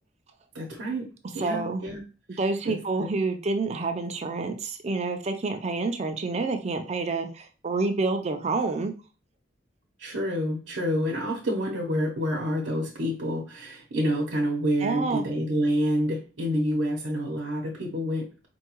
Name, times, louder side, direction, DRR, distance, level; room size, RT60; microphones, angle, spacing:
voice 1, 0.5-1.1 1.3-2.0 2.3-2.4 2.6-3.1 10.0-18.5, equal, 85° right, -2 dB, 0.8 m, -28 dB
voice 2, 1.4-1.9 2.4-8.9 14.8-15.2, right 3 dB, 35° right, 6 dB, 0.5 m, -28 dB
4.5 x 2.3 x 2.9 m, 0.34 s
head